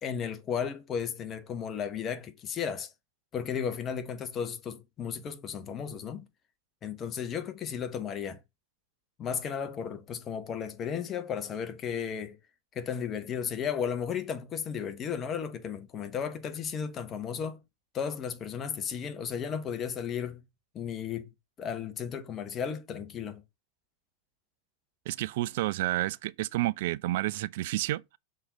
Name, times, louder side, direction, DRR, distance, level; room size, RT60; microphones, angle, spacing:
voice 1, 0.0-2.9 3.3-6.3 6.8-8.4 9.2-12.4 12.7-17.6 17.9-20.4 20.7-21.3 21.6-23.4, left 7 dB, 25° left, 1.1 m, -34 dB
voice 2, 25.1-28.2, right 16 dB, 50° right, 0.4 m, -30 dB
6.3 x 3.8 x 4.0 m
figure-of-eight pair, 90°, 0 cm